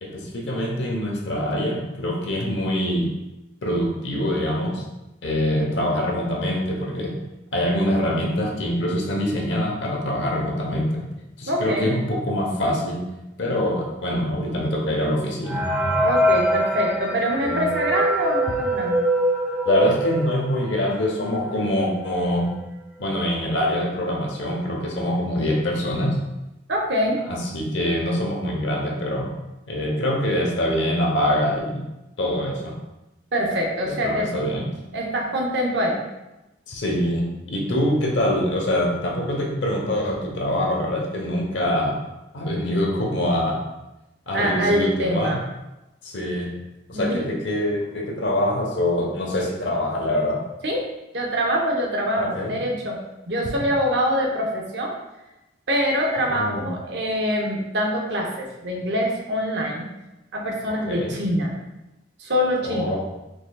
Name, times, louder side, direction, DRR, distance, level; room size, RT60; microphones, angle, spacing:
voice 1, 0.0-3.1 3.6-4.8 5.2-7.1 7.5-11.1 11.4-13.0 13.4-15.6 17.4-17.7 19.7-22.5 23.0-26.2 27.3-29.3 29.7-31.9 32.2-32.8 33.8-34.6 36.7-42.0 42.3-43.6 44.3-45.4 46.0-46.5 46.9-50.4 52.2-52.5 56.3-56.7 60.9-61.1 62.6-63.0, left 1 dB, 75° left, 0 dB, 0.9 m, -24 dB
voice 2, 11.5-11.9 16.0-19.0 26.7-27.2 33.3-34.6 34.9-36.0 44.3-45.4 46.9-47.3 50.6-50.9 51.1-53.0 53.3-55.0 55.7-59.9 60.3-61.5 62.2-62.9, equal, 65° right, 0 dB, 0.8 m, -24 dB
sound 1, 15.5-20.9 21.3-21.4 21.6-21.8 22.5-22.6 23.0-23.3, right 1 dB, 10° right, 0.4 m, -23 dB
5.0 x 3.6 x 2.3 m, 0.97 s
head